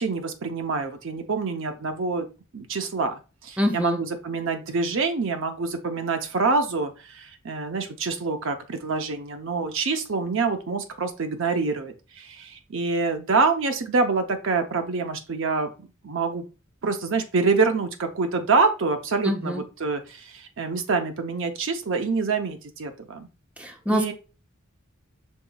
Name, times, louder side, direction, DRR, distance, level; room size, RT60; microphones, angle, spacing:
voice 1, 0.0-2.3 2.5-16.4 16.8-23.3 23.9-24.1, right 4 dB, 65° right, 7 dB, 0.6 m, -26 dB
voice 2, 3.6-4.0 19.2-19.6 23.6-24.1, equal, 5° right, 3 dB, 0.6 m, -25 dB
5.5 x 4.0 x 2.3 m, 0.32 s
head